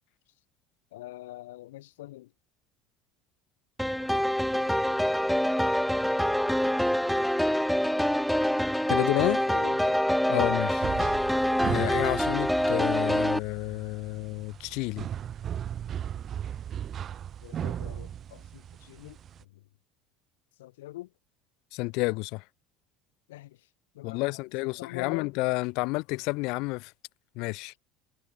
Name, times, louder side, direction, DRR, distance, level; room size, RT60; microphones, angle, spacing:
voice 1, 0.9-2.3 9.5-10.0 10.3-10.6 17.4-19.6 20.6-21.1 23.3-23.7 23.9-25.3, left 16 dB, 90° left, 7.2 m, -44 dB
sound 1, 3.8-13.4, equal, ahead, 1.2 m, -26 dB
voice 2, 8.9-9.4 10.3-10.8 11.6-15.1 21.7-22.4 24.0-26.9 27.3-27.7, left 26 dB, 70° left, 1.6 m, -30 dB
sound 2, 10.8-19.4, right 9 dB, 45° right, 4.5 m, -37 dB
supercardioid pair, 95°, 0 cm